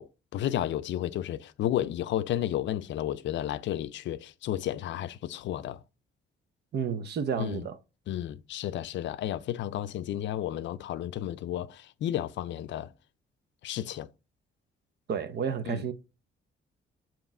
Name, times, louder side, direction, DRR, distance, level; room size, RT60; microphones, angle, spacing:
voice 1, 0.0-5.8 7.4-7.6 8.1-12.9 13.6-14.1 15.7-15.8, left 12 dB, 70° left, 0.5 m, -32 dB
voice 2, 6.7-7.8 15.1-15.9, right 7 dB, 55° right, 0.8 m, -31 dB
7.2 x 3.0 x 4.3 m
cardioid pair, 90°, 20 cm